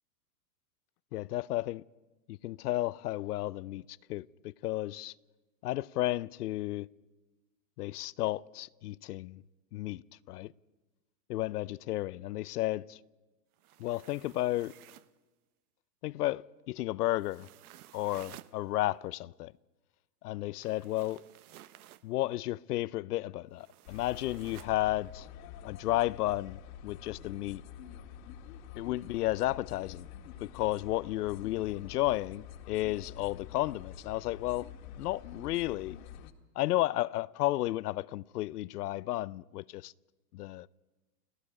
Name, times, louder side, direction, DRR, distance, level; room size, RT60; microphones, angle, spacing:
voice 1, 1.1-1.8 2.3-5.1 5.6-6.9 7.8-9.4 9.7-10.0 10.3-10.5 11.3-13.0 13.8-14.7 16.0-17.5 17.9-19.5 20.2-21.2 22.0-25.3 25.6-27.6 28.8-30.1 30.4-34.7 35.0-36.0 36.6-39.9 40.3-40.7, left 16 dB, 75° left, 0.6 m, -33 dB
sound 1, 13.5-15.2 17.2-18.6 20.6-22.1 23.6-24.8, right 14 dB, 65° right, 0.9 m, -54 dB
sound 2, 23.9-36.3, left 9 dB, 55° left, 1.8 m, -47 dB
30.0 x 18.0 x 4.9 m
hypercardioid pair, 130°, 47 cm